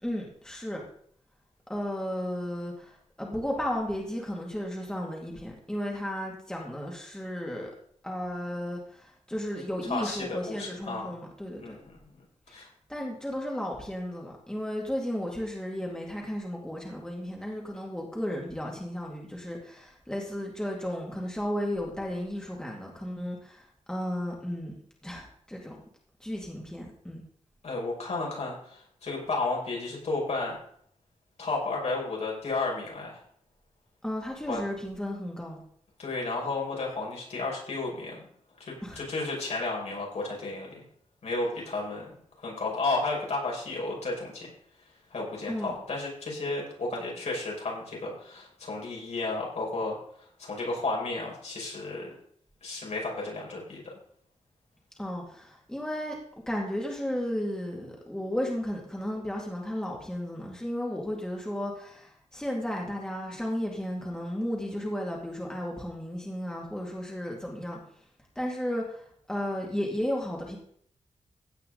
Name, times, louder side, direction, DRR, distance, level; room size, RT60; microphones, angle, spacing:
voice 1, 0.0-0.8 1.7-7.7 8.0-11.8 12.5-12.6 12.9-24.8 25.0-25.8 26.2-27.2 34.0-35.6 38.8-39.0 45.5-45.7 55.0-56.2 56.5-67.8 68.4-70.6, equal, 5° left, -2 dB, 2.5 m, -34 dB
voice 2, 9.9-11.2 11.6-12.2 12.5-12.7 27.6-30.6 31.4-33.2 34.5-34.6 36.0-38.2 38.6-40.8 41.2-44.5 45.1-52.1 52.6-53.8, left 3 dB, 65° left, -2 dB, 5.8 m, -33 dB
16.0 x 8.9 x 4.0 m, 0.62 s
wide cardioid pair, 135°, 12 cm